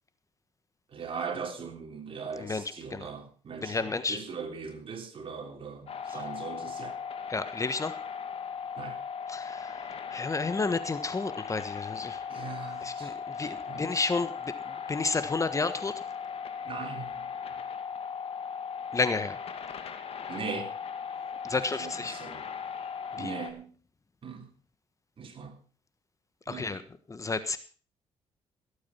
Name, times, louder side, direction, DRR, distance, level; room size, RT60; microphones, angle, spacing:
voice 1, 0.9-7.0 8.8-9.0 12.3-13.1 13.7-14.0 16.6-17.3 20.3-20.7 21.5-22.5 23.2-23.7 24.2-24.5 25.2-25.6 26.5-26.8, right 5 dB, 50° right, 4 dB, 3.5 m, -40 dB
voice 2, 3.6-4.2 7.3-8.0 9.3-9.8 10.1-12.2 12.8-15.9 18.9-19.4 21.4-22.1 23.1-23.3 26.5-26.8 27.1-27.6, left 3 dB, 30° left, 12 dB, 1.3 m, -31 dB
sound 1, 5.9-23.5, left 6 dB, 60° left, 2.3 m, -38 dB
17.0 x 8.6 x 5.6 m, 0.40 s
cardioid pair, 75°, 11 cm